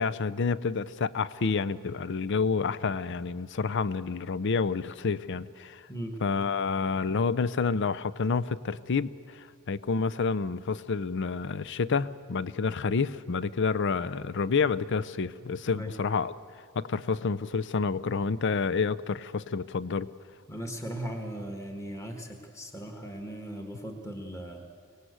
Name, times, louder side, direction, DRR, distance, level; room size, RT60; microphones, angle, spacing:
voice 1, 0.0-5.8 6.2-16.3 16.8-20.1, left 5 dB, 60° left, 17 dB, 0.6 m, -29 dB
voice 2, 20.5-24.6, right 1 dB, 15° left, 4 dB, 1.4 m, -38 dB
24.5 x 18.5 x 8.0 m, 2.1 s
head